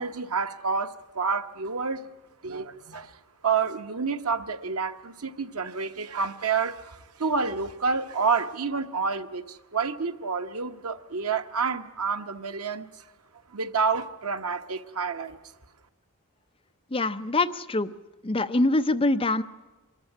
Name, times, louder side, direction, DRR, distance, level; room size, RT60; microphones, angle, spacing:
voice 1, 0.0-2.1 2.4-3.2 3.4-13.0 13.5-15.4, right 5 dB, 85° right, 8 dB, 1.2 m, -29 dB
voice 2, 16.9-17.9 18.2-19.4, left 2 dB, 25° left, 9 dB, 0.7 m, -24 dB
24.5 x 14.0 x 9.9 m, 1.1 s
head